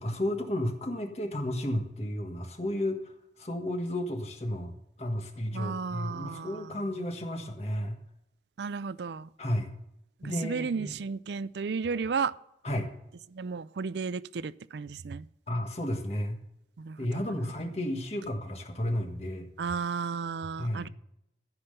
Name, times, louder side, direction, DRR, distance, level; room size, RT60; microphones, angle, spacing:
voice 1, 0.0-4.7 5.0-8.0 9.4-9.7 10.2-11.0 12.6-12.9 15.5-16.4 17.0-19.5 20.6-20.9, left 1 dB, 35° left, 4 dB, 1.5 m, -32 dB
voice 2, 5.5-6.7 8.6-9.3 10.4-12.3 13.3-15.3 16.8-17.3 19.6-20.9, right 5 dB, 75° right, 18 dB, 0.4 m, -33 dB
14.0 x 5.7 x 6.7 m, 0.80 s
head